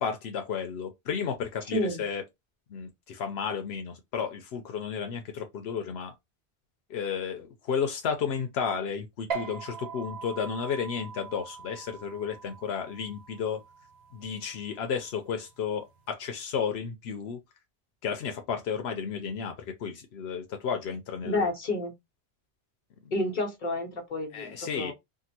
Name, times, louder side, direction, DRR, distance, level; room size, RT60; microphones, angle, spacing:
voice 1, 0.0-2.2 2.7-6.1 6.9-13.6 14.1-17.4 18.0-21.5 24.3-24.9, left 6 dB, 85° left, 0.9 m, -33 dB
voice 2, 1.7-2.0 21.2-21.9 23.1-24.9, left 1 dB, 50° left, 1.1 m, -30 dB
sound 1, 9.3-16.1, right 6 dB, 75° right, 1.1 m, -42 dB
3.6 x 2.2 x 2.8 m
omnidirectional pair, 1.1 m